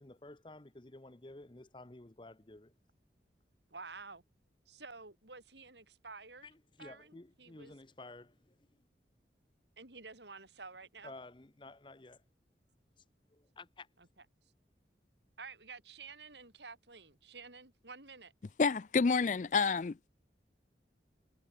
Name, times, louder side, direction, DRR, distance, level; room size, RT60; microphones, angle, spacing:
voice 1, 0.0-2.7 6.4-8.7 11.0-12.2 13.0-13.1 13.3-13.9, left 2 dB, 25° left, 0.9 m, -52 dB
voice 2, 3.7-4.2 4.7-6.5 6.8-7.8 9.8-11.1 15.4-18.3, right 4 dB, 80° right, 5.1 m, -50 dB
voice 3, 18.6-20.1, left 4 dB, 45° left, 0.4 m, -29 dB
head